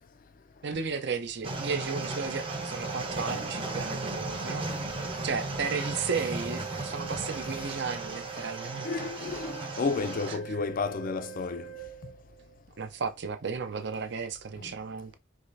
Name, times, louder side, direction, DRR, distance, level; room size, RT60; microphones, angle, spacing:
voice 1, 0.6-4.6 5.2-9.1 10.3-10.6 12.8-15.1, right 5 dB, 60° right, 0.6 m, -34 dB
sound 1, 1.4-10.4, right 2 dB, 25° right, 0.8 m, -36 dB
Organ, 1.6-12.6, right 11 dB, 80° right, 0.9 m, -45 dB
voice 2, 8.8-11.7 14.6-14.7, left 4 dB, 45° left, 0.4 m, -32 dB
4.9 x 3.2 x 2.6 m
head